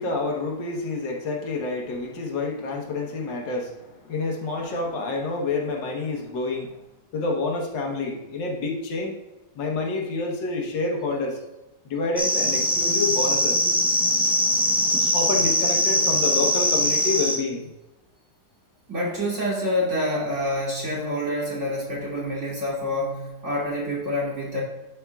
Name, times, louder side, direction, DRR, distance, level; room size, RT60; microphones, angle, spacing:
voice 1, 0.0-6.8 7.1-9.1 9.6-11.4 11.9-13.6 15.1-17.7 19.1-19.2, left 3 dB, 90° left, 1 dB, 1.8 m, -28 dB
sound 1, 12.2-17.4, equal, 5° right, 0.4 m, -22 dB
voice 2, 18.9-24.6, left 1 dB, 40° right, -6 dB, 2.9 m, -27 dB
11.0 x 5.6 x 2.3 m, 1.1 s
omnidirectional pair, 1.9 m